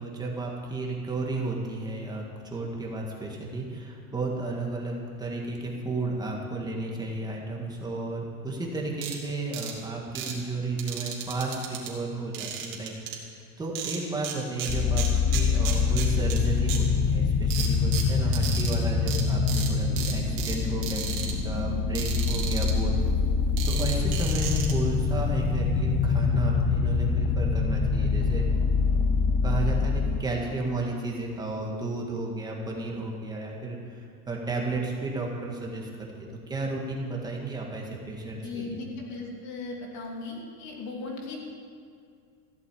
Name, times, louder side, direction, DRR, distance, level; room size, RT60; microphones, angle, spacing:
voice 1, 0.0-15.1 15.3-21.2 21.4-23.0 23.6-28.4 29.4-38.8, right 2 dB, 10° right, -1 dB, 1.7 m, -33 dB
sound 1, 9.0-9.2 9.5-9.7 10.2-10.3 10.8-11.9 12.3-13.2 13.8-14.3 14.6-16.4 16.7-16.8 17.5-18.8 19.1-19.2 19.5-19.7 20.0-20.6 20.8-21.3 22.0-22.7 23.6-24.7, right 9 dB, 50° right, 2.5 m, -34 dB
sound 2, 14.7-30.2, left 5 dB, 15° left, 0.3 m, -25 dB
voice 2, 38.4-41.4, left 3 dB, 40° left, 0 dB, 2.9 m, -37 dB
14.5 x 8.2 x 8.5 m, 2.3 s
supercardioid pair, 165°, 42 cm